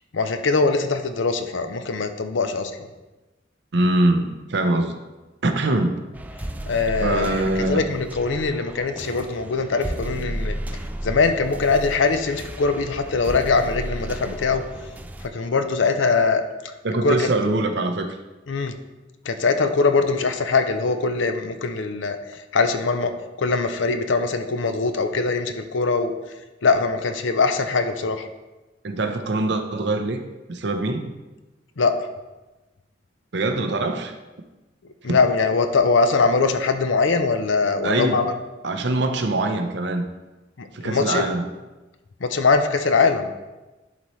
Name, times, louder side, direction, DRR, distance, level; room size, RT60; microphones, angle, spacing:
voice 1, 0.1-2.7 6.7-10.5 11.0-14.6 15.3-16.4 17.0-17.3 18.5-18.7 19.3-22.2 22.5-23.1 23.4-26.1 26.6-28.3 31.8-32.1 35.0-38.3 40.6-41.3 42.2-43.3, left 4 dB, 80° left, 7 dB, 0.6 m, -22 dB
voice 2, 3.7-5.0 5.4-6.0 7.0-7.8 16.8-18.2 28.8-30.2 30.5-31.0 33.3-34.1 35.1-35.2 37.8-38.2 38.6-40.1 40.7-41.5, right 2 dB, 65° right, 6 dB, 0.7 m, -23 dB
sound 1, 6.1-15.3, right 1 dB, 10° right, 0.3 m, -33 dB
11.0 x 4.2 x 3.1 m, 1.1 s
head